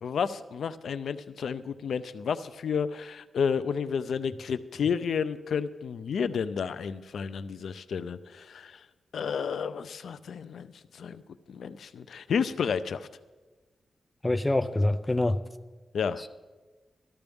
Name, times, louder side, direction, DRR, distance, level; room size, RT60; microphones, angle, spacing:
voice 1, 0.0-8.8 9.1-10.7 11.0-11.2 11.5-13.1 15.9-16.3, left 6 dB, 75° left, 13 dB, 0.4 m, -31 dB
voice 2, 14.2-15.4 16.2-16.3, left 1 dB, 10° left, 7 dB, 0.4 m, -25 dB
14.0 x 13.5 x 3.5 m, 1.3 s
wide cardioid pair, 165°, 0 cm